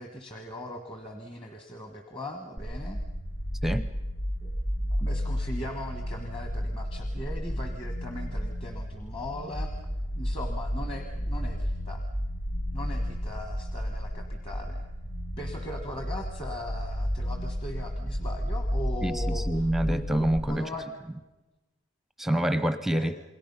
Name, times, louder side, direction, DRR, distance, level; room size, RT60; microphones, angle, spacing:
voice 1, 0.0-3.0 4.4-4.5 4.9-9.7 10.2-12.0 12.7-14.9 15.4-20.0 20.5-20.9 23.0-23.2, left 1 dB, 25° left, 5 dB, 1.5 m, -39 dB
sound 1, 2.6-20.4, equal, 85° left, 4.2 m, -32 dB
voice 2, 19.0-20.7 22.2-23.2, right 1 dB, ahead, 12 dB, 0.6 m, -27 dB
28.0 x 21.5 x 5.6 m, 1.1 s
head